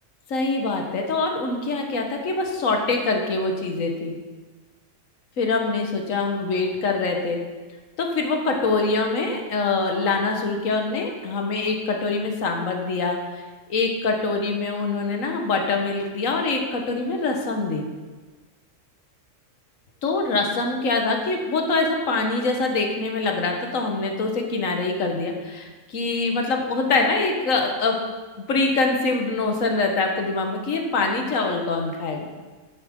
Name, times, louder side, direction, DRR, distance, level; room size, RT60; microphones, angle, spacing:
voice 1, 0.3-4.2 5.4-7.4 8.0-13.4 13.7-17.9 20.0-28.0 28.5-32.3, left 3 dB, 85° left, 3 dB, 1.6 m, -24 dB
11.5 x 7.1 x 3.6 m, 1.3 s
omnidirectional pair, 1.3 m